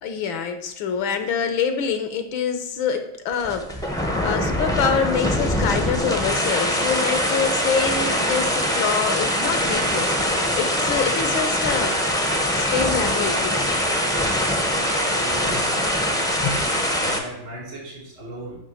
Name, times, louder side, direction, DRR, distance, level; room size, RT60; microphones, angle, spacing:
voice 1, 0.0-10.1 10.6-12.0 12.2-13.6 16.4-16.7, left 6 dB, 75° left, 8 dB, 1.7 m, -26 dB
sound 1, 3.3-17.2, equal, 5° left, 0.5 m, -23 dB
voice 2, 14.9-16.4 16.9-18.6, right 1 dB, 80° right, -4 dB, 5.0 m, -37 dB
10.0 x 3.4 x 7.0 m, 0.79 s
omnidirectional pair, 2.2 m